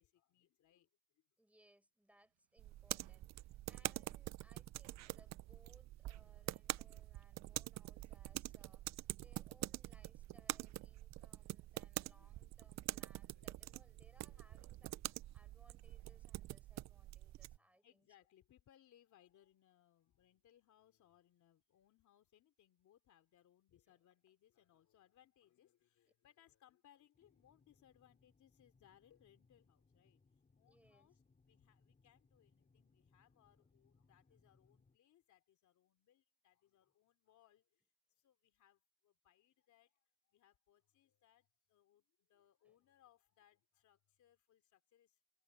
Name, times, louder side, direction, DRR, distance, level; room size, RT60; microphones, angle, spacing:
voice 1, 0.0-1.3 3.7-4.0 5.5-5.7 6.4-7.2 12.0-12.7 13.3-15.7 17.4-30.2 30.6-37.8 38.2-45.2, left 11 dB, 75° left, 3.0 m, -72 dB
voice 2, 1.4-18.1 23.9-24.0 30.7-31.1 42.6-42.8, right 1 dB, 5° right, 6.4 m, -71 dB
sound 1, 2.1-3.8 4.4-5.7 6.0-6.1, right 15 dB, 85° right, 1.2 m, -70 dB
sound 2, 2.6-17.6, right 15 dB, 65° right, 0.5 m, -46 dB
sound 3, 27.1-35.0, left 4 dB, 25° left, 3.6 m, -74 dB
cardioid pair, 90°, 30 cm